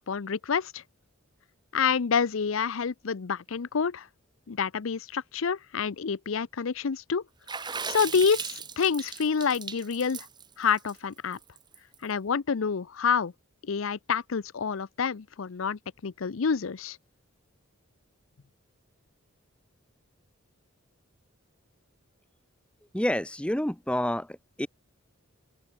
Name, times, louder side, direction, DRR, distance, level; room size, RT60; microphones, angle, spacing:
voice 1, 0.1-0.8 1.7-4.1 4.5-7.2 7.9-10.3 10.6-11.4 12.0-13.3 13.6-17.0, left 6 dB, 75° left, 0.6 m, -28 dB
Water / Splash splatter, 7.5-12.0, right 6 dB, 20° right, 3.5 m, -37 dB
voice 2, 22.9-24.7, left 1 dB, 5° left, 0.7 m, -29 dB
open air
head